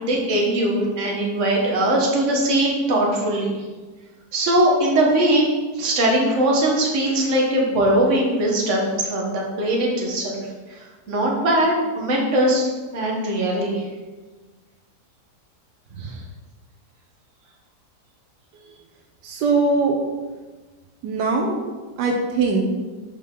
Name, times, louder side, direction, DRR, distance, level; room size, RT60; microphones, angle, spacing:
voice 1, 0.0-3.6 4.3-5.5 5.8-10.4 10.7-10.8 11.1-13.8 15.9-16.1, right 1 dB, 50° right, -2 dB, 1.4 m, -20 dB
voice 2, 19.2-20.0 21.0-21.6 22.0-22.7, right 3 dB, 80° right, 1 dB, 1.3 m, -21 dB
5.3 x 5.0 x 3.7 m, 1.3 s
omnidirectional pair, 1.8 m